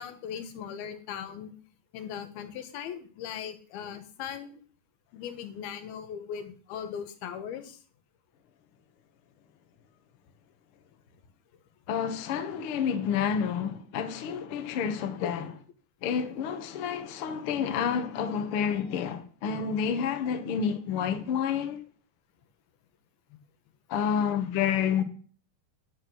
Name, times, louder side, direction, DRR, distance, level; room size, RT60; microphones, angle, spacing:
voice 1, 0.0-1.5 1.9-4.6 5.1-7.8 15.2-15.3, left 8 dB, 90° left, 3.1 m, -38 dB
voice 2, 11.9-15.5 16.0-21.8 23.9-25.0, left 7 dB, 65° left, 1.4 m, -29 dB
10.0 x 8.8 x 6.2 m
omnidirectional pair, 4.3 m